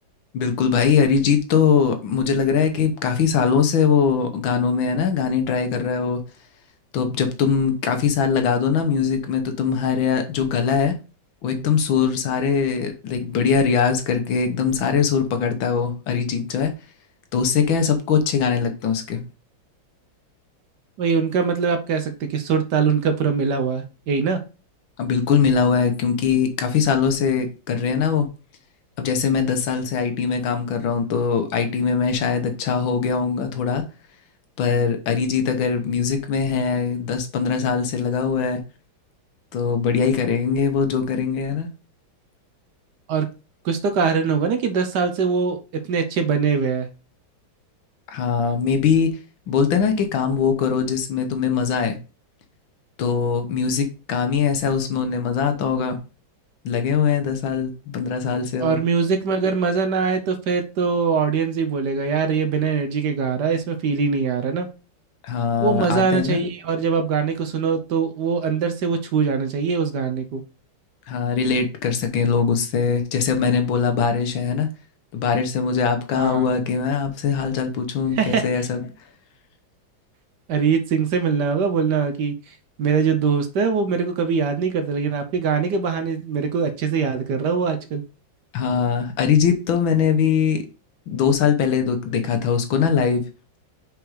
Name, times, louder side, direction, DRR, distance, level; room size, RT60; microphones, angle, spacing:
voice 1, 0.3-6.2 6.9-10.9 11.4-16.7 17.3-19.2 25.0-28.3 29.0-33.8 34.6-38.6 39.5-41.7 48.1-49.1 49.5-52.0 53.0-56.0 56.7-58.8 65.2-66.4 71.1-74.7 75.1-78.9 88.5-90.6 91.1-93.2, left 6 dB, 75° left, 1.7 m, -21 dB
voice 2, 21.0-24.4 43.1-43.3 43.6-45.6 45.9-46.9 58.6-64.7 65.6-70.4 76.1-76.4 78.2-78.6 80.5-82.3 82.8-88.0, right 5 dB, 65° right, 1.3 m, -22 dB
5.0 x 4.7 x 4.9 m
omnidirectional pair, 2.2 m